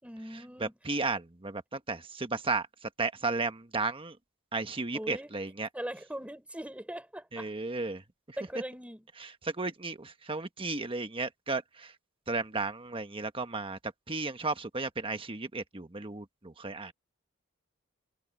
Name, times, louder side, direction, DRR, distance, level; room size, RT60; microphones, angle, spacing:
voice 1, 0.0-0.8 4.9-5.3 5.7-7.5 8.4-9.1, equal, 5° right, 5.5 m, -40 dB
voice 2, 0.6-2.7 3.0-4.2 4.5-5.7 7.3-8.0 9.4-11.9 12.3-13.8 14.1-16.9, right 3 dB, 25° right, 1.3 m, -34 dB
head